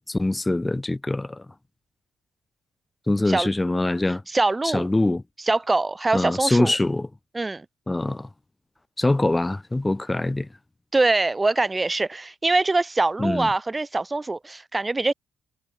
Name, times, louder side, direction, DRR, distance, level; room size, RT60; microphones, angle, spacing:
voice 1, 0.1-1.5 3.1-4.2 4.6-5.2 6.1-7.1 7.9-8.3 9.0-10.5 13.2-13.5, left 2 dB, 15° left, 2.4 m, -23 dB
voice 2, 4.3-4.9 5.5-6.7 7.3-7.7 10.9-15.1, right 3 dB, 20° right, 1.9 m, -23 dB
cardioid pair, 90°, 0 cm